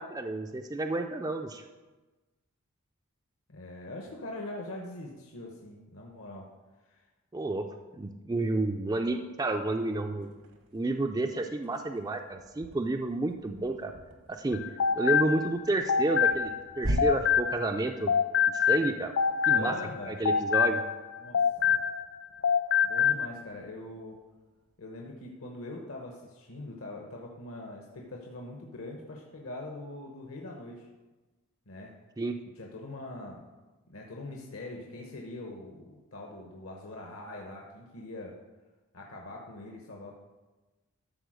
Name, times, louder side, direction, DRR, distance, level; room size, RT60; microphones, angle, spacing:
voice 1, 0.0-1.6 7.3-7.7 8.0-10.3 10.7-13.9 14.3-14.6 15.0-18.1 18.5-19.1 19.5-19.8 20.1-20.8 32.2-32.4, right 2 dB, 15° right, 5 dB, 0.4 m, -30 dB
voice 2, 3.5-6.5 6.8-7.1 19.5-20.2 21.2-21.4 22.8-24.2 24.8-30.9 31.7-32.0 32.6-33.5 33.9-38.4 38.9-40.1, left 2 dB, 70° left, 0 dB, 1.1 m, -42 dB
sound 1, 10.2-25.1, right 1 dB, 70° right, 1.1 m, -43 dB
sound 2, 14.5-17.8 18.1-22.2 22.4-23.3, left 7 dB, 50° left, 0.4 m, -26 dB
13.0 x 4.3 x 6.3 m, 1.2 s
head